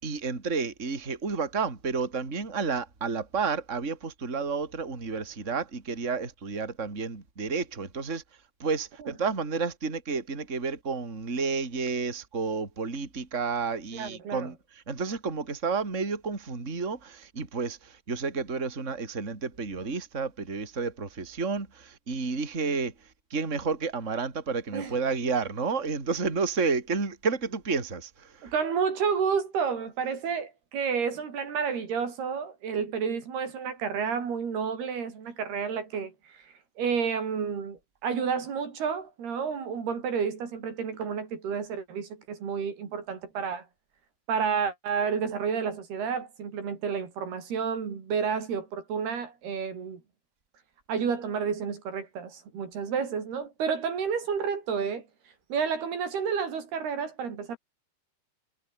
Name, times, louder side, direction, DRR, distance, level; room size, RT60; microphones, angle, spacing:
voice 1, 0.0-8.2 8.6-14.6 14.9-28.5, right 4 dB, 20° right, 3.6 m, -31 dB
voice 2, 13.9-14.5 24.7-24.9 28.4-43.7 44.3-50.0 50.9-55.1 55.5-57.6, right 6 dB, 75° right, 6.2 m, -30 dB
omnidirectional pair, 4.6 m